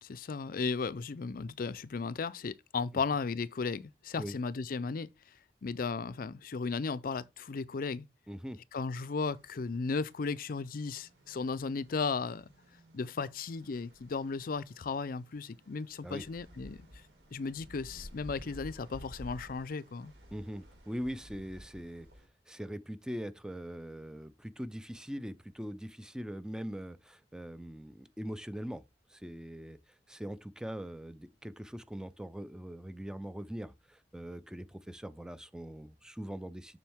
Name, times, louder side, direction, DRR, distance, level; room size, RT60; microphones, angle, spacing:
voice 1, 0.0-8.1 8.7-12.5 12.9-17.0 17.3-20.1, left 4 dB, 55° left, 0.5 m, -35 dB
voice 2, 8.3-8.6 16.0-16.2 20.3-22.1 22.5-28.8 29.1-36.8, equal, 5° right, 0.5 m, -42 dB
sound 1, 8.7-22.3, equal, 90° right, 3.5 m, -54 dB
7.4 x 6.2 x 3.5 m
head